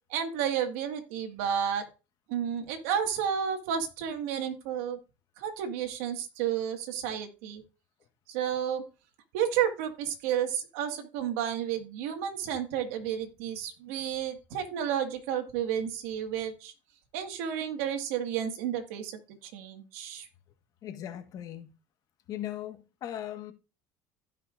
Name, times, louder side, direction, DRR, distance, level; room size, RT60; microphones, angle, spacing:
voice 1, 0.1-1.9 2.3-5.0 5.4-7.6 8.3-8.8 9.3-16.7 17.1-20.3, right 9 dB, 85° right, 1.8 m, -31 dB
voice 2, 20.8-21.7 22.3-23.5, left 11 dB, 55° left, 1.4 m, -38 dB
16.0 x 5.8 x 2.5 m
supercardioid pair, 95°, 7 cm